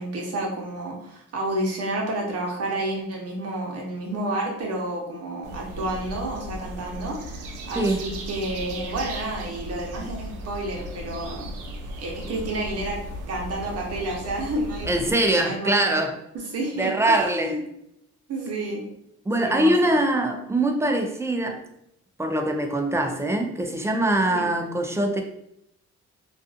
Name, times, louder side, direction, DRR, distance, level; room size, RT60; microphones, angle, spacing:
voice 1, 0.0-11.5 12.0-13.0 13.3-16.0 16.5-17.6 18.3-18.8 19.4-19.7 24.3-24.4, right 1 dB, 55° right, -1 dB, 0.9 m, -30 dB
sound 1, 5.4-15.1, right 1 dB, 85° right, 0.5 m, -36 dB
voice 2, 14.8-16.1 16.8-17.6 19.3-21.6 22.2-25.2, right 1 dB, 10° right, 3 dB, 0.3 m, -23 dB
2.5 x 2.4 x 2.4 m, 0.78 s
cardioid pair, 90°, 30 cm